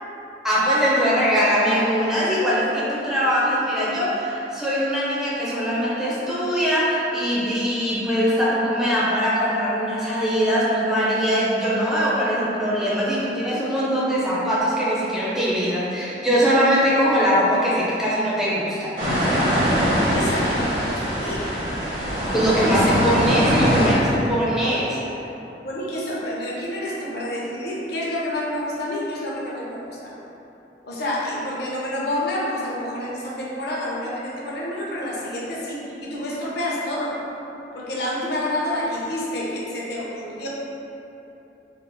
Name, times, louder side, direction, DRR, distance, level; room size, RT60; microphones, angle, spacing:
voice 1, 0.4-18.9 22.3-25.0, equal, 5° right, -8 dB, 0.5 m, -21 dB
sound 1, 19.0-23.9, equal, 50° right, 0.9 m, -22 dB
voice 2, 19.9-21.5 22.5-22.9 25.6-30.2 30.8-37.2 37.7-40.5, left 1 dB, 65° left, -5 dB, 0.5 m, -28 dB
3.4 x 3.0 x 2.2 m, 3.0 s
head